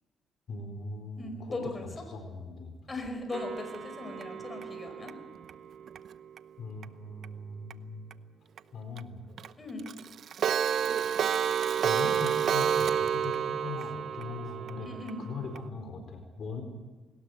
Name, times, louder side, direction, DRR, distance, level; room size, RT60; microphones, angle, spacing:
voice 1, 0.5-2.8 6.6-8.0 8.7-9.2 11.8-14.9 15.2-16.6, left 3 dB, 60° left, 5 dB, 4.4 m, -40 dB
voice 2, 1.2-1.9 2.9-5.1 9.6-9.9 14.8-15.2, left 2 dB, 25° left, 5 dB, 5.0 m, -38 dB
Clock, 3.3-6.4 6.8-6.9 7.2-7.3 7.7-7.8 8.1-8.2 8.6-8.7 9.0-9.1 9.4-9.5 9.8-15.6, right 8 dB, 60° right, 0.8 m, -30 dB
21.5 x 19.0 x 8.1 m, 1.3 s
cardioid pair, 90°, 0 cm